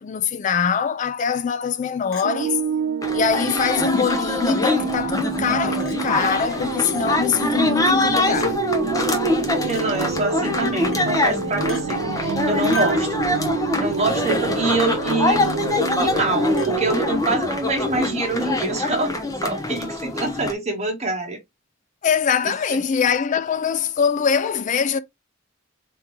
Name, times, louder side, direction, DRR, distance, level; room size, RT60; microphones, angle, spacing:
voice 1, 0.0-2.6 3.1-8.6 22.0-25.0, left 6 dB, 40° left, 0.4 m, -23 dB
Chink clink, 2.1-2.3 3.2-3.3 4.5-4.6 5.8-6.0 6.9-7.1 8.2-8.5 9.7-9.9 10.9-11.1 11.7-11.8 12.7-13.1 14.3-14.4 15.4-15.6 16.6-16.7, equal, 75° left, 1.3 m, -34 dB
sound 1, 2.2-17.1, right 6 dB, 75° right, 0.4 m, -28 dB
sound 2, 3.0-20.5, left 2 dB, 15° left, 0.8 m, -24 dB
voice 2, 9.7-13.1 13.8-15.5 16.0-19.1 19.4-21.4 22.4-22.8, right 2 dB, 35° right, 1.0 m, -25 dB
3.6 x 3.0 x 4.5 m
head